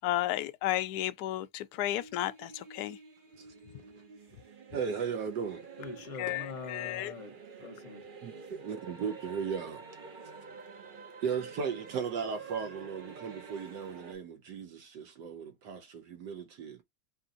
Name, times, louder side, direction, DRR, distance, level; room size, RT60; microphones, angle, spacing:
voice 1, 0.0-3.0 6.2-7.1, left 14 dB, 80° left, 0.8 m, -33 dB
sound 1, 1.7-14.1, right 5 dB, 85° right, 0.4 m, -49 dB
voice 2, 4.7-5.7 8.2-9.8 11.2-16.8, right 6 dB, 65° right, 1.1 m, -36 dB
voice 3, 5.8-8.0, left 4 dB, 45° left, 1.2 m, -43 dB
4.3 x 2.6 x 3.8 m
omnidirectional pair, 2.3 m